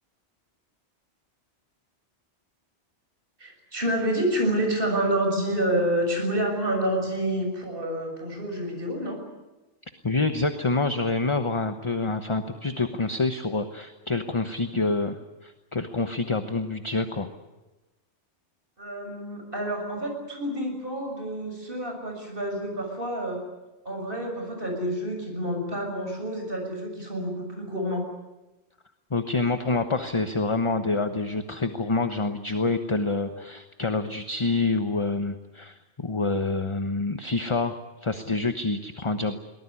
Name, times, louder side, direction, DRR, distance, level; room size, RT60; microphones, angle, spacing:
voice 1, 3.4-9.2 18.8-23.4 23.9-28.1, right 1 dB, 50° right, 2 dB, 7.0 m, -28 dB
voice 2, 10.0-17.3 29.1-37.7 38.0-39.4, left 3 dB, 25° left, 8 dB, 1.1 m, -27 dB
23.0 x 19.5 x 9.9 m, 1.1 s
omnidirectional pair, 1.2 m